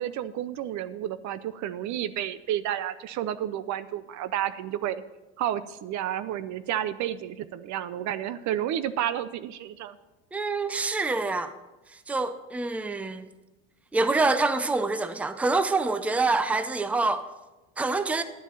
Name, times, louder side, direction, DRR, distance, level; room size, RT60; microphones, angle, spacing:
voice 1, 0.0-5.0 5.4-10.0, right 11 dB, 50° right, 0.6 m, -31 dB
voice 2, 10.3-11.5 11.9-13.3 13.9-17.3 17.8-18.2, right 3 dB, 5° right, 0.6 m, -26 dB
11.5 x 7.1 x 5.6 m
supercardioid pair, 90°, 37 cm